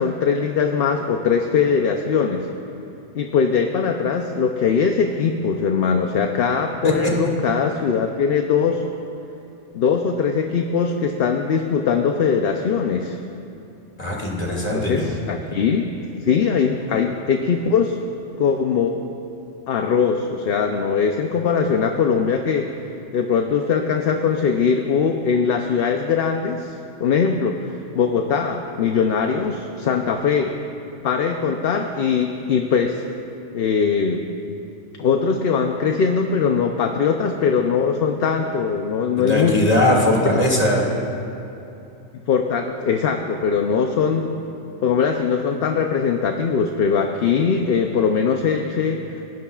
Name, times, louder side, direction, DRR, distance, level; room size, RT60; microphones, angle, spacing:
voice 1, 0.0-2.5 3.1-8.8 9.7-13.2 14.7-15.9 16.2-18.0 18.4-19.0 19.7-22.7 23.1-26.7 27.0-30.5 31.0-33.0 33.5-34.2 35.0-39.6 42.3-44.3 44.8-49.3, left 6 dB, 55° left, 4 dB, 0.8 m, -21 dB
voice 2, 14.0-15.1 39.2-41.0, left 1 dB, 30° left, -3 dB, 2.3 m, -20 dB
29.0 x 11.5 x 2.4 m, 2.8 s
omnidirectional pair, 1.3 m